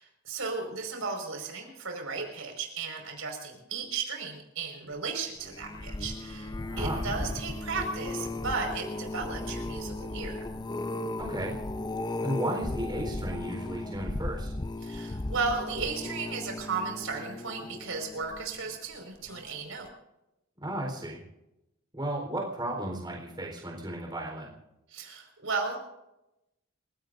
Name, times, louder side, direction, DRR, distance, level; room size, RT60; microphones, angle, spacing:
voice 1, 0.0-10.4 14.8-19.9 24.9-25.8, right 4 dB, 75° right, 3 dB, 5.2 m, -35 dB
sound 1, 5.4-18.7 19.3-19.6 19.9-20.0, left 2 dB, 20° left, 0.6 m, -36 dB
voice 2, 6.7-7.0 11.2-11.5 12.2-14.5 20.6-21.2 21.9-24.6, right 1 dB, 20° right, 0 dB, 4.1 m, -34 dB
28.5 x 17.0 x 2.6 m, 0.91 s
head